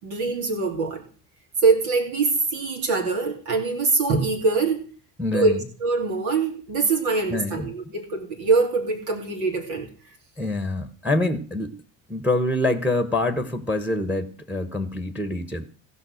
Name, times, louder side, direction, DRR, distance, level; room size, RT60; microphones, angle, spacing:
voice 1, 0.0-1.0 1.6-4.9 5.3-5.5 5.8-9.9, right 4 dB, 80° right, 2.9 m, -23 dB
voice 2, 5.2-5.6 7.3-7.7 10.4-11.8 12.1-15.7, left 2 dB, 5° right, 1.2 m, -25 dB
15.5 x 5.6 x 6.4 m
hypercardioid pair, 60°, 47 cm